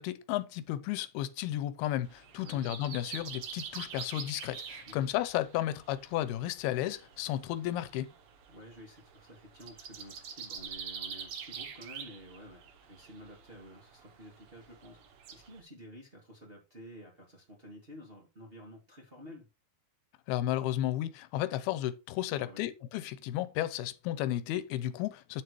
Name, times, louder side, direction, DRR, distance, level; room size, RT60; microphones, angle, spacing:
voice 1, 0.0-8.1 20.3-25.4, left 13 dB, 85° left, 2.6 m, -33 dB
sound 1, 2.0-15.6, right 7 dB, 80° right, 1.2 m, -46 dB
voice 2, 2.3-2.6 4.9-5.1 8.5-19.5 22.3-22.7, equal, 20° right, 2.1 m, -51 dB
9.3 x 7.6 x 3.1 m
omnidirectional pair, 4.4 m